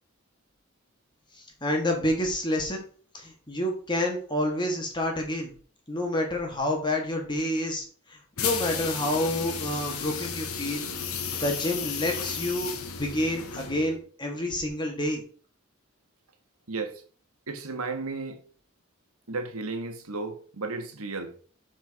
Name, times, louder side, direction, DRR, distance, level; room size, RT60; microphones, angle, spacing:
voice 1, 1.3-2.8 3.1-5.5 5.9-15.2, left 1 dB, 20° left, 1.5 m, -29 dB
sound 1, 8.4-14.0, left 7 dB, 90° left, 1.1 m, -33 dB
voice 2, 16.7-17.0 17.5-18.4 19.3-21.3, right 3 dB, 85° right, 1.5 m, -34 dB
7.2 x 4.6 x 4.7 m
head